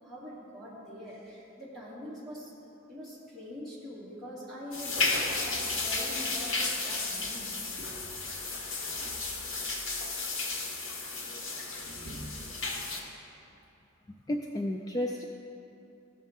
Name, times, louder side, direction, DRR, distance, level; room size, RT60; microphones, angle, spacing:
voice 1, 0.0-2.5 2.9-8.0, left 1 dB, ahead, -9 dB, 2.3 m, -44 dB
sound 1, 4.7-13.0, left 3 dB, 65° left, 1.3 m, -33 dB
voice 2, 14.3-15.2, left 1 dB, 15° left, 1 dB, 0.4 m, -32 dB
15.5 x 6.5 x 3.6 m, 2.8 s
head